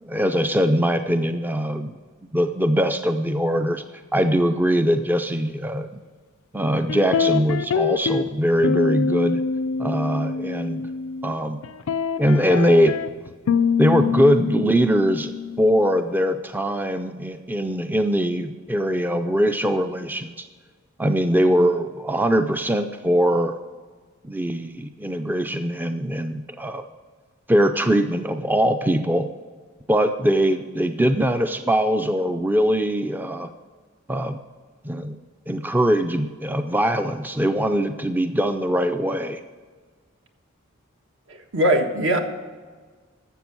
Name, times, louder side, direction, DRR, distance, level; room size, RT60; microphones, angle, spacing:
voice 1, 0.0-1.9 2.3-3.8 4.1-5.9 6.5-9.4 9.8-10.9 11.2-11.6 12.2-13.0 13.8-15.3 15.6-20.5 21.0-23.6 24.2-26.8 27.5-29.3 29.9-33.5 34.1-34.4 34.8-35.2 35.5-39.4, equal, 10° right, 8 dB, 0.4 m, -21 dB
sound 1, 6.9-8.3 8.6-11.4 11.6-16.0, left 5 dB, 85° left, 0.5 m, -25 dB
voice 2, 41.3-42.2, right 1 dB, 70° right, 4 dB, 1.4 m, -21 dB
12.5 x 7.6 x 6.1 m, 1.5 s
head